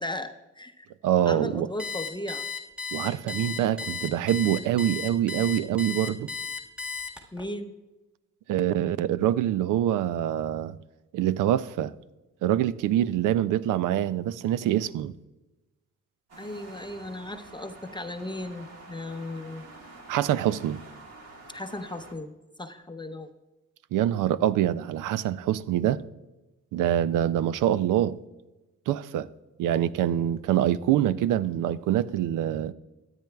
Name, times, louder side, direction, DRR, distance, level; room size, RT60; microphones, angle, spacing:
voice 1, 0.0-0.9 1.3-2.5 7.3-7.7 16.4-19.6 21.5-23.3, left 1 dB, 15° left, 0.6 m, -36 dB
voice 2, 1.0-1.7 2.9-6.3 8.5-10.8 11.1-11.9 12.4-15.1 20.1-20.8 23.9-26.0 26.7-28.2 28.9-29.3 29.6-32.7, right 11 dB, 85° right, 0.5 m, -25 dB
Alarm, 1.8-7.4, left 5 dB, 5° right, 1.6 m, -34 dB
sound 1, 16.3-22.1, right 2 dB, 55° right, 1.7 m, -48 dB
13.5 x 9.1 x 2.3 m
cardioid pair, 80°, 31 cm